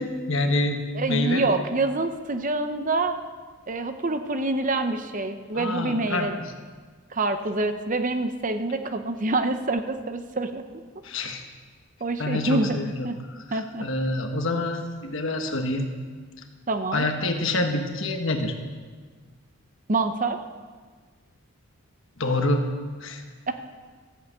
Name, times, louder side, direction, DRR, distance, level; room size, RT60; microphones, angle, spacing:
voice 1, 0.0-0.8 1.1-1.6 5.5-6.5 11.0-11.4 12.2-15.9 16.9-18.5 22.2-22.7 23.0-23.2, left 2 dB, 60° left, 4 dB, 1.4 m, -27 dB
voice 2, 0.9-3.2 3.7-6.4 7.1-10.6 12.0-12.8 13.0-13.2 13.5-13.9 16.7-17.1 19.9-20.4 23.5-23.6, right 2 dB, 35° right, 8 dB, 0.7 m, -26 dB
14.0 x 7.9 x 8.1 m, 1.5 s
head